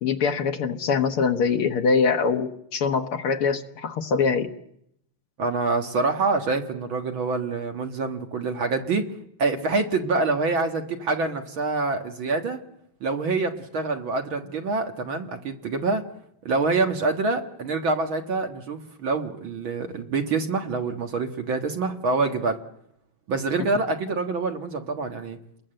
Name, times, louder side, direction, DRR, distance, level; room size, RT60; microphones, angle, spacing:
voice 1, 0.0-4.5, left 5 dB, 60° left, 6 dB, 1.5 m, -23 dB
voice 2, 5.4-9.1 9.4-12.6 13.0-16.0 16.4-22.6 23.3-25.4, right 3 dB, 50° right, 4 dB, 1.7 m, -26 dB
29.0 x 21.5 x 7.8 m, 0.74 s
omnidirectional pair, 4.1 m